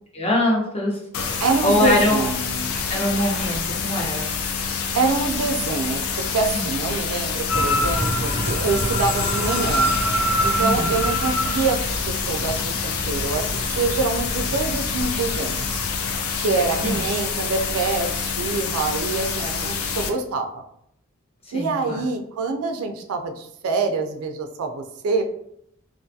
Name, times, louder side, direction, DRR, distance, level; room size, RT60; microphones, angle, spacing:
voice 1, 0.1-0.9 1.2-2.2 2.9-4.3 6.5-6.6 10.5-10.9 16.8-17.0 21.5-22.0, left 1 dB, 25° left, -2 dB, 0.7 m, -23 dB
sound 1, 1.1-20.1, left 5 dB, 70° left, 0.4 m, -27 dB
voice 2, 1.4-2.7 4.9-9.9 10.4-15.8 16.4-20.6 21.5-25.2, right 3 dB, 70° right, 5 dB, 0.3 m, -25 dB
sound 2, 7.5-16.1, equal, 85° left, 1.0 m, -26 dB
2.4 x 2.3 x 2.6 m, 0.73 s
head